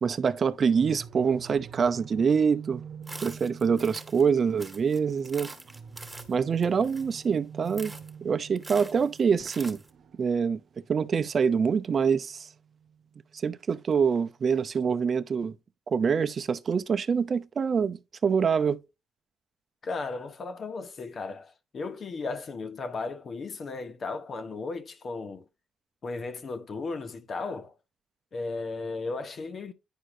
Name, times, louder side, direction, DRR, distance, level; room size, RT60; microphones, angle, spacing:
voice 1, 0.0-2.8 3.2-5.5 6.3-7.9 8.2-9.8 10.2-10.6 10.9-12.5 13.4-15.6 15.9-18.8, right 6 dB, 45° right, 0.6 m, -25 dB
sound 1, 0.6-13.4, right 7 dB, 70° right, 1.0 m, -47 dB
sound 2, 3.0-4.3 4.6-7.3 7.6-8.1 8.6-9.9, right 2 dB, 15° right, 1.7 m, -45 dB
voice 2, 19.8-25.4 26.0-27.7 28.3-29.7, left 3 dB, 45° left, 1.3 m, -35 dB
10.0 x 4.7 x 2.7 m
cardioid pair, 90°, 0 cm